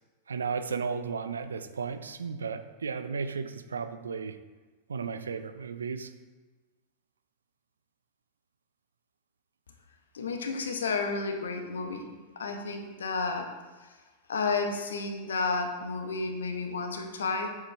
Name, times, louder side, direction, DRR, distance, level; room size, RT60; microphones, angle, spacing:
voice 1, 0.3-4.4 4.9-6.1, right 5 dB, 70° right, 10 dB, 0.5 m, -34 dB
voice 2, 10.1-13.5 14.3-17.5, left 4 dB, 65° left, 5 dB, 1.1 m, -31 dB
9.5 x 7.3 x 3.4 m, 1.3 s
figure-of-eight pair, 90°, 0 cm